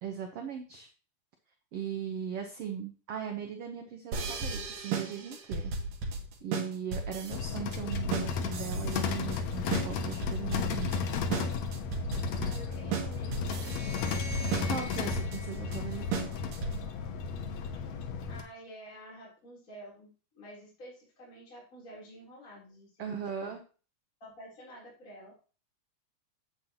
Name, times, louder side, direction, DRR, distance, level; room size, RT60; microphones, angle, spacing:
voice 1, 0.0-0.9 1.7-5.7 6.4-10.9 14.7-16.3 23.0-23.6, right 7 dB, 60° right, 4 dB, 1.8 m, -38 dB
sound 1, 4.1-17.0, right 4 dB, 80° right, 3.1 m, -35 dB
sound 2, 7.3-18.4, left 5 dB, 65° left, 2.3 m, -34 dB
voice 2, 12.4-14.5 18.3-20.1 20.3-23.5 24.2-25.3, right 1 dB, 25° left, -5 dB, 3.8 m, -50 dB
sound 3, 13.4-16.7, left 2 dB, 25° right, 1.9 m, -46 dB
9.7 x 8.4 x 2.9 m, 0.35 s
omnidirectional pair, 3.7 m